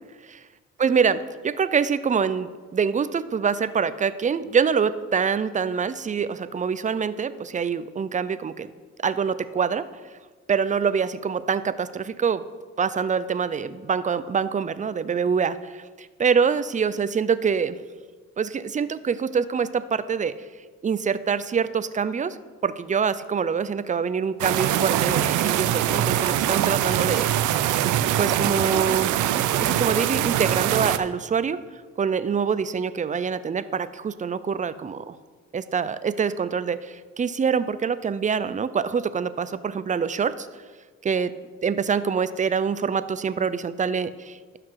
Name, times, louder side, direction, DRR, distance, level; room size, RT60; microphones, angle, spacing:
voice 1, 0.8-8.7 9.0-9.8 10.5-12.4 12.8-15.8 16.2-17.8 18.4-20.3 20.8-22.4 22.6-27.3 28.0-29.1 29.6-35.2 35.5-40.5 41.0-41.3 41.6-44.6, right 6 dB, 25° right, 14 dB, 0.5 m, -25 dB
sound 1, 24.4-31.0, right 11 dB, 80° right, 0.6 m, -23 dB
12.5 x 5.9 x 4.7 m, 1.4 s
cardioid pair, 90°, 30 cm